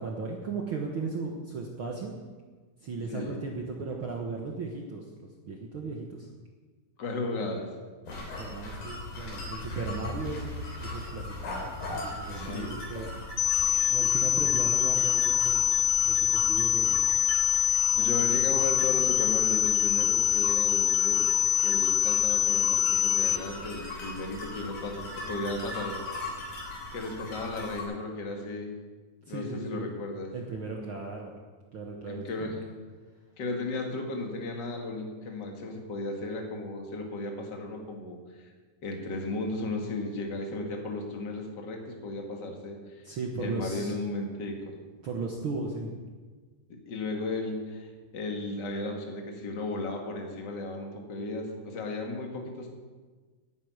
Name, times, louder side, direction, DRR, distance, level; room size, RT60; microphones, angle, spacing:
voice 1, 0.0-2.2 2.8-6.3 8.2-13.1 13.9-15.6 16.0-17.1 18.2-18.5 29.3-29.9 30.3-31.3 31.7-32.6 43.0-44.0 45.0-45.9, right 3 dB, 85° right, 0 dB, 1.1 m, -36 dB
voice 2, 3.0-3.4 7.0-7.7 12.3-12.8 17.9-21.2 21.6-26.0 26.9-28.7 29.3-30.3 32.1-32.6 33.4-38.2 38.8-43.0 43.4-44.7 46.7-52.7, left 2 dB, 35° left, 2 dB, 2.0 m, -35 dB
sound 1, 8.1-27.8, left 2 dB, 65° left, 4.9 m, -39 dB
sound 2, 13.4-23.4, left 10 dB, 90° left, 1.6 m, -24 dB
11.5 x 9.5 x 9.5 m, 1.4 s
omnidirectional pair, 4.4 m